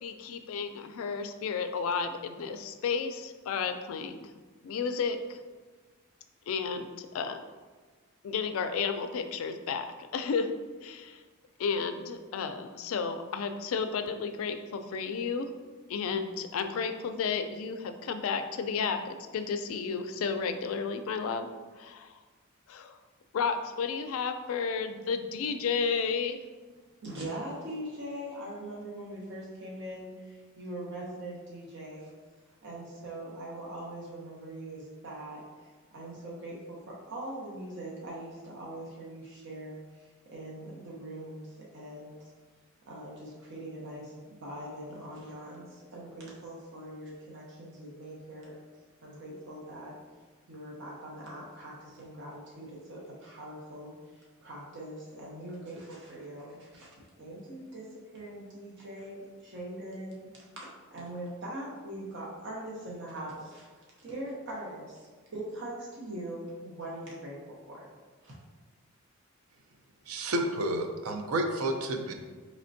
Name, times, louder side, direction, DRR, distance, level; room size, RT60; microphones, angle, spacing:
voice 1, 0.0-4.3 4.6-5.4 6.5-7.4 8.2-9.9 10.1-10.5 10.8-11.2 11.6-15.5 15.9-21.5 21.8-22.1 22.7-23.0 23.3-26.4, left 5 dB, 70° left, 8 dB, 0.3 m, -32 dB
voice 2, 27.0-32.1 32.6-42.2 42.9-48.6 49.0-49.9 50.5-56.9 57.2-60.3 60.6-60.7 60.9-63.7 64.0-67.9 68.2-68.4, right 1 dB, 55° right, -4 dB, 0.7 m, -42 dB
voice 3, 70.1-72.1, right 1 dB, 85° right, 5 dB, 0.5 m, -30 dB
4.2 x 3.1 x 2.6 m, 1.4 s
head